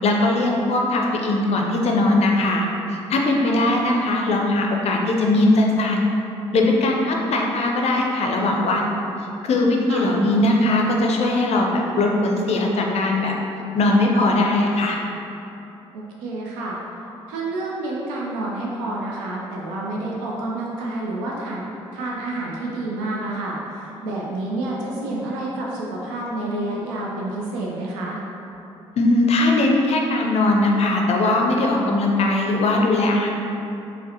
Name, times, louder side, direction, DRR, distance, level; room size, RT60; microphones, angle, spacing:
voice 1, 0.0-2.7 3.1-6.0 6.5-8.9 9.4-13.3 13.7-15.0 29.0-33.3, left 2 dB, 45° left, 0 dB, 0.5 m, -20 dB
voice 2, 3.4-3.8 9.9-10.1 15.9-16.8 17.3-21.7 21.9-28.2, right 2 dB, 65° right, -3 dB, 0.5 m, -29 dB
4.5 x 2.1 x 2.8 m, 2.9 s
figure-of-eight pair, 45°, 15 cm